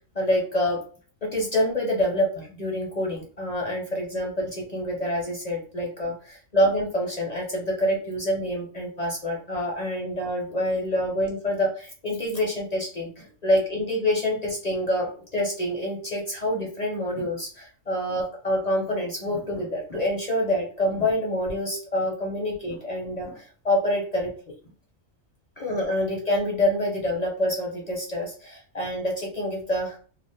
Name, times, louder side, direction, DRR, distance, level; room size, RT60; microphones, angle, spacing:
voice 1, 0.1-0.8 1.2-24.3 25.6-30.0, left 1 dB, 40° left, -2 dB, 0.6 m, -27 dB
2.4 x 2.4 x 3.3 m, 0.41 s
omnidirectional pair, 1.3 m